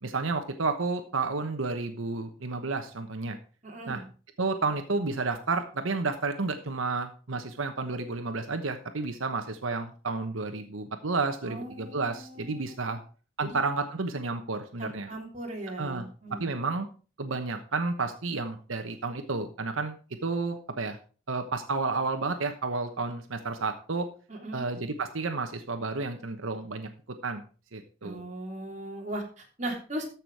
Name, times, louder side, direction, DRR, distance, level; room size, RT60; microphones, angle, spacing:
voice 1, 0.0-3.4 3.9-4.0 4.4-13.0 13.4-15.1 15.8-16.9 17.2-19.9 20.2-21.0 21.3-24.1 24.5-26.9 27.2-27.4 27.7-28.2, right 3 dB, 90° right, 7 dB, 1.1 m, -31 dB
voice 2, 3.6-4.0 11.4-12.6 13.4-13.6 14.8-16.5 24.3-24.6 28.0-30.0, right 1 dB, 35° right, 0 dB, 3.0 m, -38 dB
13.5 x 6.0 x 4.7 m, 0.37 s
head